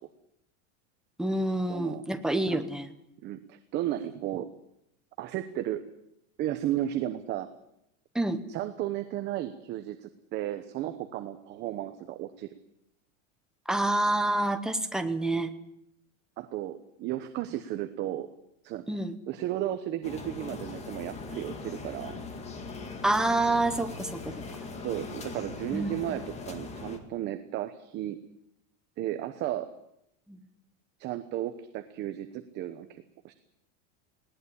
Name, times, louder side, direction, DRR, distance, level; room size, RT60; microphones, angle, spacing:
voice 1, 1.2-2.9 8.1-8.4 13.7-15.5 18.9-19.2 23.0-24.4 25.7-26.2 30.3-30.4, right 2 dB, ahead, 7 dB, 0.9 m, -28 dB
voice 2, 1.7-2.0 2.5-2.6 3.2-4.5 5.2-5.8 6.4-7.5 8.5-12.5 15.3-15.4 16.4-18.3 18.6-18.8 19.3-22.2 24.8-28.2 29.0-29.7 31.0-33.3, right 13 dB, 25° right, 9 dB, 1.0 m, -34 dB
sound 1, 20.0-27.0, left 4 dB, 15° left, 2.0 m, -40 dB
20.0 x 18.0 x 9.8 m, 0.80 s
supercardioid pair, 175°, 38 cm